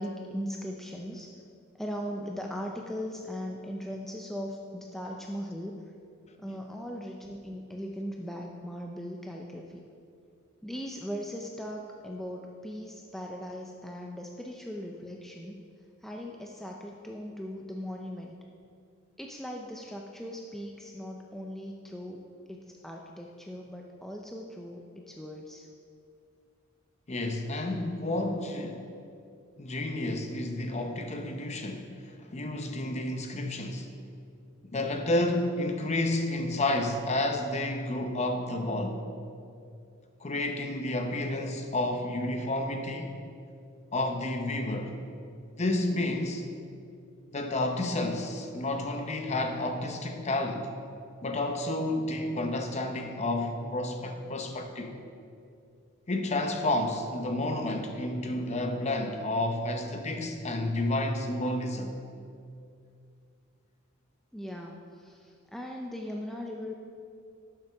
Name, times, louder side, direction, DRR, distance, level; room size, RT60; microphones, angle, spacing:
voice 1, 0.0-1.3 1.8-5.8 6.4-9.8 10.6-15.6 16.0-18.3 19.2-22.2 22.5-25.7 64.3-66.7, equal, ahead, 0 dB, 0.4 m, -39 dB
voice 2, 27.1-28.8 29.6-33.9 34.6-39.0 40.2-43.1 43.9-44.9 45.6-46.5 47.3-50.7 51.2-54.9 56.1-61.9, left 1 dB, 30° left, 5 dB, 0.7 m, -30 dB
11.5 x 6.8 x 3.4 m, 2.4 s
head